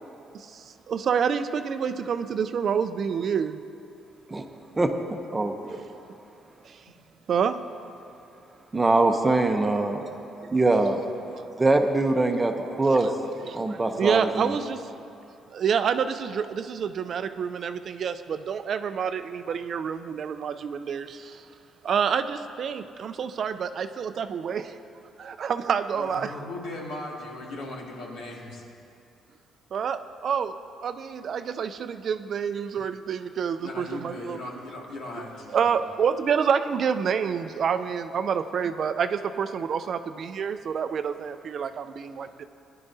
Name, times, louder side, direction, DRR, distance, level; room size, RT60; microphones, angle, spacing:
voice 1, 0.3-3.6 6.6-6.8 7.3-7.6 11.3-11.5 12.6-13.1 13.5-14.9 15.5-21.5 21.8-24.8 25.2-26.3 29.7-30.6 30.8-34.4 35.5-42.4, right 7 dB, 50° right, 10 dB, 0.4 m, -28 dB
voice 2, 5.3-5.8 8.7-10.0 10.5-11.0 11.6-13.1 13.5-14.5, right 2 dB, 15° right, 4 dB, 0.7 m, -23 dB
voice 3, 25.9-28.6 33.6-35.8, left 1 dB, 80° left, -2 dB, 2.1 m, -38 dB
18.5 x 11.0 x 2.7 m, 2.6 s
cardioid pair, 135°, 0 cm